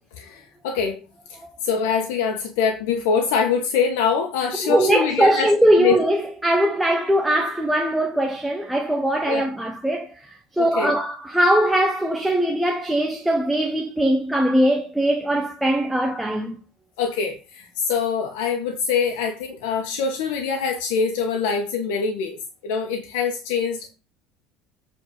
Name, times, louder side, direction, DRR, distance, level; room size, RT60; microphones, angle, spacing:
voice 1, 0.1-1.0 1.3-5.5 5.8-5.9 9.3-9.4 10.6-10.9 17.0-22.4 22.6-23.9, left 6 dB, 80° left, 1.7 m, -24 dB
voice 2, 4.6-16.6, right 1 dB, ahead, 0.8 m, -21 dB
8.4 x 4.5 x 7.1 m
cardioid pair, 175°, 0 cm